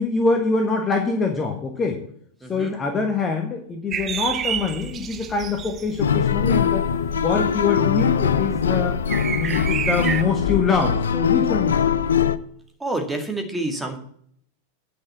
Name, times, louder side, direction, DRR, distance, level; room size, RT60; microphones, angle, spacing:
voice 1, 0.0-2.0 2.5-6.8 7.1-9.0 9.4-12.0, left 4 dB, 20° left, 3 dB, 1.4 m, -24 dB
voice 2, 2.4-2.8 12.8-14.0, right 2 dB, 10° right, 4 dB, 2.1 m, -28 dB
sound 1, 3.9-10.2, right 8 dB, 25° right, 0.6 m, -31 dB
sound 2, 6.0-12.4, left 7 dB, 65° left, 0.5 m, -21 dB
9.7 x 5.9 x 7.0 m, 0.63 s
figure-of-eight pair, 90°, 0 cm